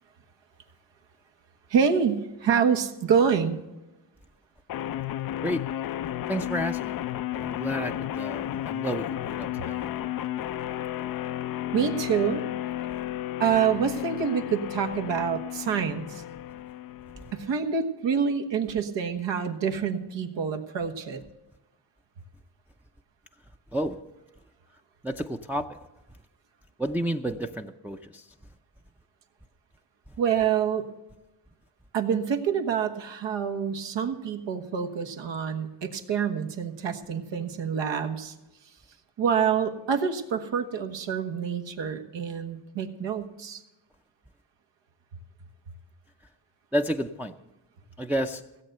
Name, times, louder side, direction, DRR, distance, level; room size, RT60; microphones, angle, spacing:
voice 1, 1.7-3.6 11.7-12.4 13.4-16.2 17.3-21.2 30.2-30.9 31.9-38.3 39.2-43.6, right 7 dB, 75° right, 5 dB, 1.6 m, -27 dB
sound 1, 4.7-17.7, left 12 dB, 50° left, 0.5 m, -33 dB
voice 2, 6.3-7.0 7.4-9.9 17.2-17.3 23.7-24.1 25.0-25.9 26.8-28.3 46.7-47.3 48.0-48.5, equal, 5° right, 3 dB, 0.6 m, -31 dB
16.5 x 7.9 x 6.6 m, 1.0 s
cardioid pair, 90°, 44 cm